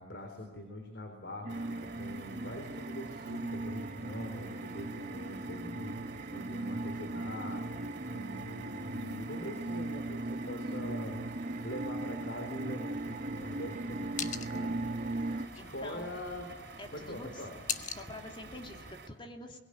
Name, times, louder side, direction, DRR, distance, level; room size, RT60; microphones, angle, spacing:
voice 1, 0.0-6.0 6.3-11.2 11.6-14.8 15.2-16.5 16.9-17.5, left 1 dB, 80° left, 5 dB, 3.8 m, -43 dB
sound 1, 1.4-15.5, right 2 dB, 45° right, 1.0 m, -38 dB
sound 2, 1.5-19.1, right 3 dB, 70° right, 3.7 m, -51 dB
sound 3, 12.9-18.9, left 8 dB, 45° left, 1.3 m, -44 dB
voice 2, 15.6-16.1 16.8-17.4 17.9-19.6, left 1 dB, 30° left, 4 dB, 2.8 m, -46 dB
23.0 x 21.5 x 10.0 m, 1.2 s
head